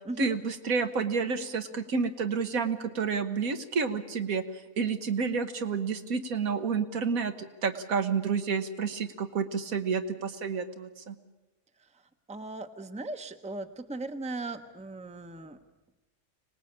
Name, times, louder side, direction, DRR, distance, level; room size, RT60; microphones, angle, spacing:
voice 1, 0.2-4.4 4.8-7.3 7.6-11.2, right 5 dB, 75° right, 8 dB, 1.7 m, -30 dB
voice 2, 12.3-15.6, right 2 dB, 5° right, 8 dB, 0.8 m, -38 dB
25.5 x 19.0 x 8.7 m, 1.1 s
omnidirectional pair, 1.5 m